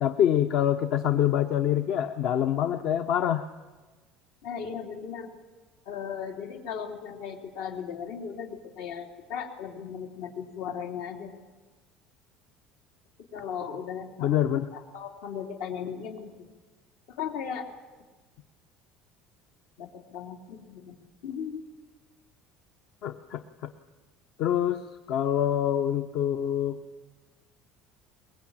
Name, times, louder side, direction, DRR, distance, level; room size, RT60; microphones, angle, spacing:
voice 1, 0.0-3.4 14.2-14.7 23.0-23.7 24.4-24.8 25.1-26.8, left 10 dB, 50° left, 9 dB, 0.8 m, -25 dB
voice 2, 4.4-5.3 5.8-11.4 13.3-14.3 14.7-16.3 17.1-17.7 19.8-21.6, left 7 dB, 75° left, 3 dB, 3.2 m, -37 dB
22.5 x 21.0 x 8.9 m, 1.3 s
cardioid pair, 170°, 0 cm